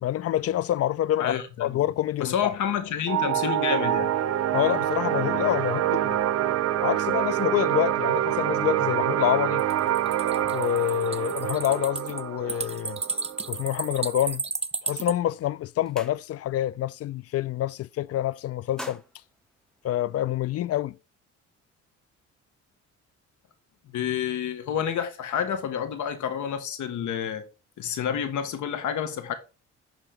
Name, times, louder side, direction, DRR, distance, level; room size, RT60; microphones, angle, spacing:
voice 1, 0.0-1.3 1.6-2.5 4.5-6.2 6.8-9.6 10.5-13.0 13.5-14.4 14.8-19.0 19.8-20.9, left 12 dB, 55° left, 0.4 m, -27 dB
voice 2, 1.2-1.8 2.2-4.1 23.9-27.4 27.8-29.3, left 8 dB, 75° left, 1.6 m, -29 dB
sound 1, 3.1-14.1, right 11 dB, 55° right, 0.7 m, -26 dB
sound 2, 9.6-15.1, right 4 dB, 20° right, 0.7 m, -33 dB
sound 3, 15.8-16.7 17.0-17.3 17.6-18.2 18.5-20.4, equal, ahead, 1.2 m, -45 dB
10.5 x 3.7 x 5.2 m
cardioid pair, 90°, 30 cm